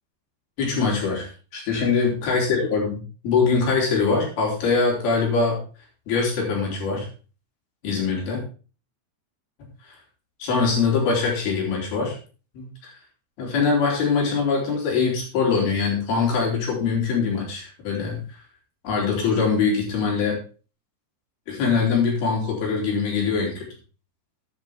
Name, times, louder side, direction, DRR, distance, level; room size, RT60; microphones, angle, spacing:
voice 1, 0.6-5.6 6.1-7.1 7.8-8.4 10.4-12.2 12.6-12.9 13.4-18.2 18.8-20.4 21.5-23.6, left 5 dB, 65° left, -2 dB, 5.8 m, -23 dB
14.0 x 9.4 x 3.6 m, 0.36 s
omnidirectional pair, 4.8 m